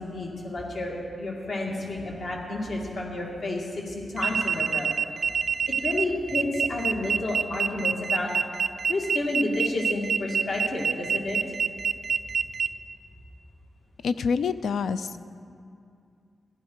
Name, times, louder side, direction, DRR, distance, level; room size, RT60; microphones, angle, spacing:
voice 1, 0.0-4.9 5.7-8.3 8.9-11.4, left 2 dB, 55° left, -1 dB, 2.3 m, -30 dB
sound 1, 4.2-12.7, right 6 dB, 55° right, 0.3 m, -26 dB
voice 2, 14.0-15.2, left 5 dB, 85° left, 12 dB, 0.5 m, -26 dB
15.5 x 11.5 x 4.8 m, 2.5 s
wide cardioid pair, 150°, 0 cm